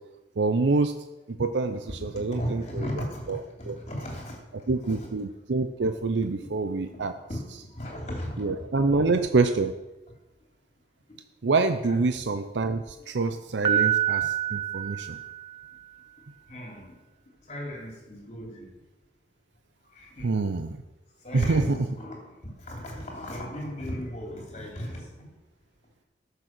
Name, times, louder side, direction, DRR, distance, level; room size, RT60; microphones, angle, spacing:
voice 1, 0.4-0.9 1.3-2.6 3.3-3.4 3.7-3.8 4.7-7.1 8.4-9.7 11.4-15.2 20.2-20.8 21.3-21.6, right 3 dB, 85° right, 8 dB, 0.6 m, -26 dB
voice 2, 1.7-4.4 4.8-5.1 6.5-6.6 6.9-9.1 11.8-12.0 13.0-13.1 14.7-14.9 15.2-15.3 16.5-16.9 17.4-18.7 19.9-20.5 21.2-25.3, equal, 40° left, -1 dB, 3.4 m, -37 dB
Piano, 13.6-15.8, right 11 dB, 30° right, 0.3 m, -27 dB
14.0 x 6.6 x 6.1 m, 1.1 s
head